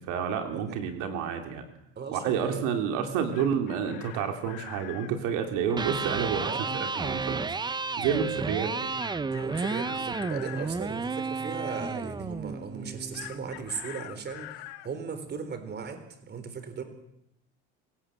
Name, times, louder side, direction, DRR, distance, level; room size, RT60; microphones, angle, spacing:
voice 1, 0.0-1.7 2.1-6.5 6.9-7.4 8.0-8.7, right 7 dB, 75° right, 5 dB, 3.3 m, -29 dB
voice 2, 2.0-2.7 6.5-6.7 8.2-8.6 9.3-16.8, right 5 dB, 35° right, 9 dB, 4.1 m, -37 dB
Chicken rooster, 3.1-5.1 9.0-10.7 13.1-14.9, left 17 dB, 85° left, 1.5 m, -44 dB
Electric guitar, 5.7-13.7, right 4 dB, 15° right, 0.8 m, -32 dB
25.0 x 17.0 x 7.7 m, 0.81 s
supercardioid pair, 115°, 30 cm